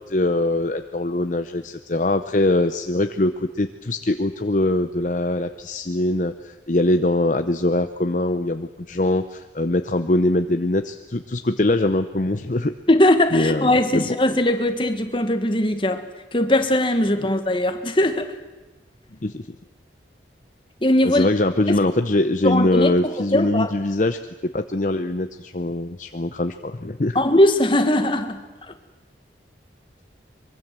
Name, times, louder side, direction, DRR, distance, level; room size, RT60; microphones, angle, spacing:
voice 1, 0.0-12.7 13.3-14.1 19.2-19.5 21.0-27.2, left 2 dB, 45° left, 0.8 m, -22 dB
voice 2, 12.9-16.1 16.3-18.3 20.8-21.3 21.7-21.8 22.4-23.7 27.2-28.4 28.7-28.8, left 1 dB, 30° left, 1.8 m, -20 dB
24.0 x 23.0 x 7.6 m
head